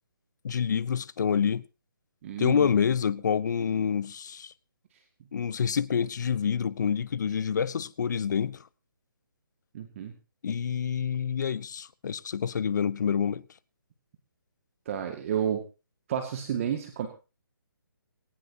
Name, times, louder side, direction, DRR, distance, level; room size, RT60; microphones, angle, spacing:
voice 1, 0.4-1.6 2.4-4.5 5.3-8.6 10.4-13.4, left 7 dB, 50° left, 0.8 m, -27 dB
voice 2, 2.2-2.7 9.7-10.1 14.9-15.6 16.1-17.1, right 9 dB, 35° right, 2.0 m, -31 dB
19.0 x 18.0 x 2.8 m
figure-of-eight pair, 145°, 12 cm